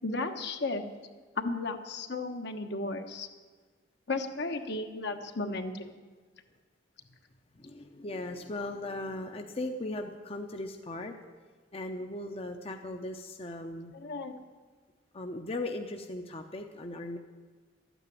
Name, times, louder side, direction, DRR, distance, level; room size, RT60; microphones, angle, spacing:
voice 1, 0.0-0.8 1.4-3.3 4.1-5.9 13.9-14.3, left 3 dB, 65° left, 6 dB, 1.2 m, -34 dB
voice 2, 7.6-11.1 11.7-13.9 15.1-17.2, left 2 dB, 30° left, 5 dB, 0.8 m, -38 dB
13.0 x 9.1 x 9.3 m, 1.4 s
head